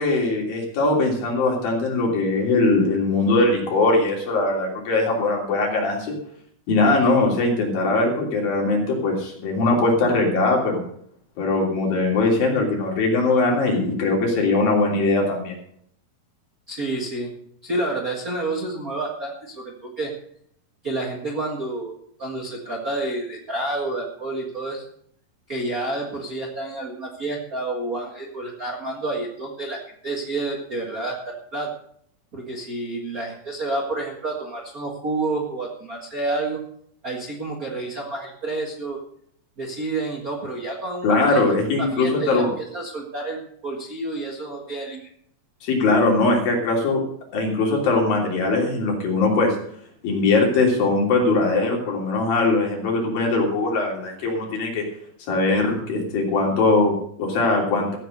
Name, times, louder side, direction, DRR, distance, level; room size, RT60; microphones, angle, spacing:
voice 1, 0.0-6.1 6.7-10.8 11.4-15.6 41.0-42.5 45.6-47.0 47.3-49.6 50.0-54.8 55.3-58.0, left 3 dB, 70° left, -1 dB, 4.9 m, -21 dB
voice 2, 16.7-17.3 17.6-20.1 20.8-21.9 22.2-24.8 25.5-31.7 32.3-36.6 37.0-39.0 39.6-41.4 41.8-45.1, right 2 dB, 40° right, -1 dB, 1.2 m, -29 dB
15.0 x 8.3 x 6.6 m, 0.66 s
omnidirectional pair, 4.2 m